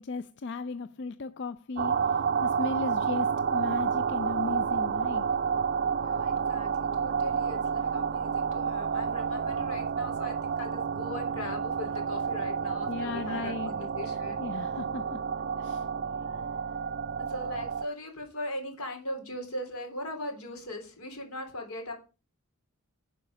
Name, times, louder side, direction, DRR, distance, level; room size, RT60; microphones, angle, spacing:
voice 1, 0.0-5.3 12.9-13.7 14.0-15.2 15.6-15.9, left 4 dB, 55° left, 0.4 m, -36 dB
sound 1, 1.8-17.9, right 6 dB, 45° right, 0.4 m, -30 dB
voice 2, 5.9-14.5 16.3-16.4 17.2-21.9, left 1 dB, 80° left, 3.5 m, -39 dB
10.5 x 5.2 x 6.6 m
head